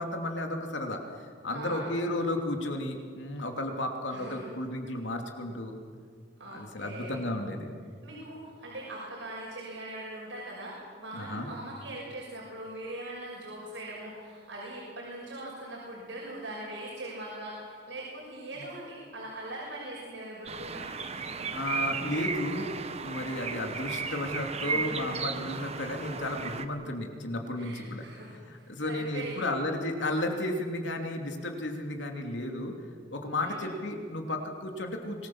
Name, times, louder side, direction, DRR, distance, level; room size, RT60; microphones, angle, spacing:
voice 1, 0.0-5.7 6.4-7.7 11.1-11.5 21.5-22.7 23.0-32.8 33.1-35.3, left 1 dB, 80° left, 3 dB, 2.9 m, -33 dB
voice 2, 1.5-1.9 4.1-4.5 6.4-7.2 8.0-20.9 24.6-25.0 27.6-29.5 33.4-33.7, right 1 dB, 80° right, -5 dB, 6.3 m, -41 dB
sound 1, 20.5-26.7, right 5 dB, 35° right, 1.1 m, -35 dB
25.0 x 20.0 x 7.3 m, 2.1 s
head